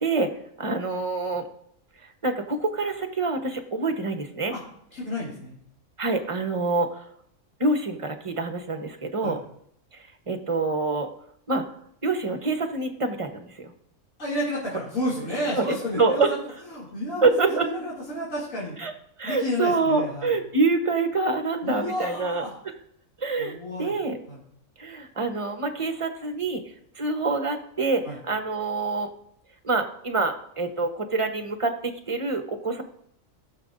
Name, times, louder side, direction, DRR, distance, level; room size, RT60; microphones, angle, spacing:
voice 1, 0.6-1.5 2.2-4.5 6.0-7.0 7.6-9.4 9.9-11.1 11.5-11.6 12.0-13.7 15.5-16.3 17.2-17.7 18.8-18.9 19.2-22.7 23.2-24.2 24.8-26.6 27.0-29.1 29.6-32.8, right 3 dB, 25° right, 6 dB, 0.9 m, -26 dB
voice 2, 4.9-5.6 9.2-9.4 14.2-16.4 16.7-18.7 19.2-20.3 21.6-22.5 23.4-23.9 24.3-24.4 28.0-28.2, left 1 dB, 75° left, -8 dB, 2.9 m, -31 dB
18.5 x 6.7 x 2.6 m, 0.69 s
omnidirectional pair, 1.4 m